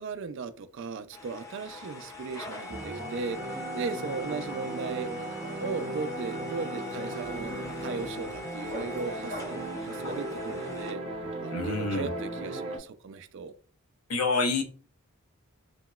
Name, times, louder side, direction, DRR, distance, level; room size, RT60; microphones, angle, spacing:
voice 1, 0.0-5.3 5.5-11.0 11.4-13.5, right 4 dB, 55° right, 0.3 m, -37 dB
sound 1, 1.1-10.9, left 2 dB, 15° left, 0.4 m, -42 dB
sound 2, 2.7-12.8, right 2 dB, 25° right, 0.7 m, -37 dB
sound 3, 3.7-10.4, left 1 dB, 75° left, 1.2 m, -45 dB
voice 2, 11.5-12.1 14.1-14.6, left 3 dB, 90° left, 0.7 m, -27 dB
2.9 x 2.8 x 2.3 m
head